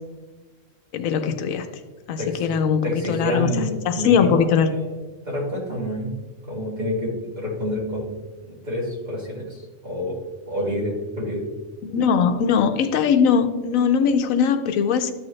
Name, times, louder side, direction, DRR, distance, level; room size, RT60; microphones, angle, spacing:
voice 1, 0.9-1.7 2.1-3.6 3.9-4.7 11.8-15.1, left 7 dB, 85° left, 8 dB, 1.1 m, -20 dB
voice 2, 2.2-2.5 2.8-6.1 6.5-8.1 8.5-10.2 10.5-11.5, equal, 35° right, -5 dB, 2.6 m, -28 dB
13.0 x 4.7 x 3.2 m, 1.3 s
omnidirectional pair, 1.4 m